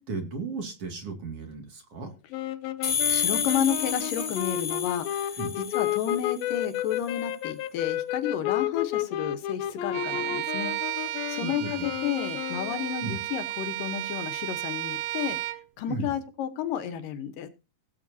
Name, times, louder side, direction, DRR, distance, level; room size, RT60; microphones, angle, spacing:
voice 1, 0.0-2.1 5.4-5.6 11.4-11.9 13.0-13.2 15.9-16.2, right 3 dB, 45° right, 5 dB, 3.0 m, -35 dB
sound 1, 2.3-13.1, left 13 dB, 90° left, 2.5 m, -32 dB
sound 2, 2.8-6.4, left 7 dB, 55° left, 0.8 m, -30 dB
voice 2, 3.1-10.7 11.3-15.4 15.8-17.5, left 9 dB, 75° left, 11 dB, 2.7 m, -32 dB
Bowed string instrument, 9.9-15.6, right 15 dB, 90° right, 2.6 m, -33 dB
18.0 x 8.3 x 2.8 m, 0.32 s
omnidirectional pair, 4.0 m